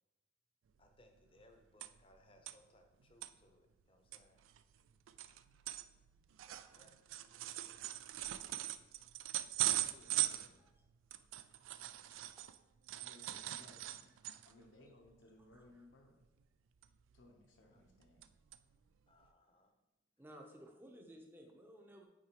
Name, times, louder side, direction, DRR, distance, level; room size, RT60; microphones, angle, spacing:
voice 1, 0.8-4.5 6.5-7.1 17.7-17.8 19.1-19.7, left 1 dB, 25° left, 5 dB, 0.6 m, -67 dB
sound 1, 0.9-1.0 1.2-2.1 2.5-2.6 3.0-3.3 3.8-3.9 4.1-12.6 12.9-14.6 15.0-15.2 15.5-15.8 16.8-17.4 17.8-18.3 18.5-18.6 19.2-19.3, right 14 dB, 90° right, 0.3 m, -41 dB
voice 2, 9.6-10.7 12.9-14.1 14.4-16.2 17.1-18.2, left 2 dB, 75° left, 1 dB, 0.8 m, -63 dB
voice 3, 10.3-10.7 12.4-12.5 15.5-15.7 20.2-22.0, equal, 10° right, 2 dB, 0.7 m, -57 dB
8.7 x 4.7 x 2.9 m, 1.0 s
head